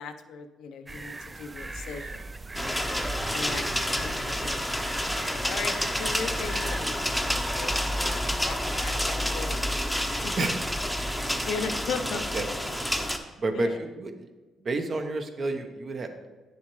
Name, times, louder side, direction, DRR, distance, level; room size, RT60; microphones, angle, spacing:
voice 1, 0.0-2.3 3.3-4.7 5.0-9.7 10.2-10.3 11.5-12.2 13.5-13.8, left 5 dB, 80° left, 8 dB, 0.6 m, -37 dB
sound 1, 0.9-11.5, right 2 dB, 20° right, 0.4 m, -39 dB
sound 2, 2.5-13.2, left 1 dB, ahead, 0.8 m, -29 dB
voice 2, 12.1-12.5 13.4-14.3 14.6-16.3, right 3 dB, 45° right, 6 dB, 0.9 m, -30 dB
9.2 x 7.1 x 3.2 m, 1.3 s
cardioid pair, 90°, 0 cm